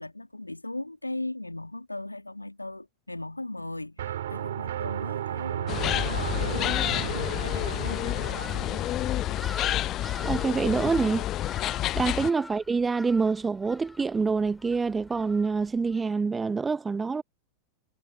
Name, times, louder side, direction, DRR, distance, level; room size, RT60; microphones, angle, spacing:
voice 1, 0.0-8.9, left 2 dB, 85° left, 2.5 m, -38 dB
sound 1, 4.0-10.7, right 11 dB, 60° right, 4.8 m, -35 dB
sound 2, 5.7-12.3, left 14 dB, 35° left, 0.8 m, -29 dB
sound 3, 7.0-16.1, left 2 dB, 10° left, 4.3 m, -47 dB
voice 2, 10.2-11.3 11.9-17.2, right 4 dB, 15° right, 0.9 m, -26 dB
figure-of-eight pair, 90°, 0 cm